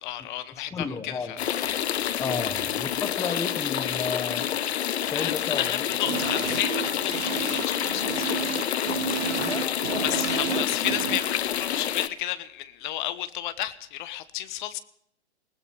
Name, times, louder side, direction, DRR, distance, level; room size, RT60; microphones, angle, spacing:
voice 1, 0.0-1.4 5.1-8.3 10.0-14.8, left 13 dB, 45° left, 1.1 m, -32 dB
voice 2, 0.7-1.3 2.2-4.5 5.1-5.8 6.1-6.2 9.4-10.7, left 5 dB, 10° left, 1.0 m, -33 dB
sound 1, 1.4-12.1, left 10 dB, 65° left, 1.0 m, -28 dB
sound 2, 6.0-11.2, right 11 dB, 80° right, 0.5 m, -33 dB
20.0 x 18.0 x 3.4 m
hypercardioid pair, 115°, 34 cm